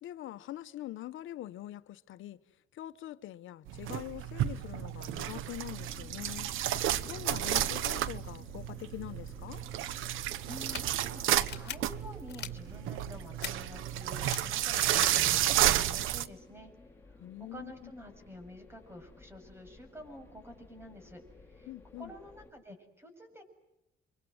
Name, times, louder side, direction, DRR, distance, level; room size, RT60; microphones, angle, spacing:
voice 1, 0.0-2.4 2.7-6.5 7.0-9.6 17.2-17.9 21.7-22.1, left 14 dB, 80° left, 1.1 m, -44 dB
sound 1, 3.7-16.3, right 12 dB, 85° right, 1.1 m, -31 dB
sound 2, 5.8-22.5, left 2 dB, 10° left, 4.9 m, -56 dB
voice 2, 10.4-16.7 17.1-21.7 22.0-23.4, left 1 dB, 10° right, 7.6 m, -49 dB
sound 3, 10.5-10.8 11.4-11.7 12.3-12.5 13.4-13.5 14.2-14.4 15.0-15.1, left 9 dB, 60° left, 2.5 m, -40 dB
29.5 x 24.5 x 8.0 m
cardioid pair, 90°, 20 cm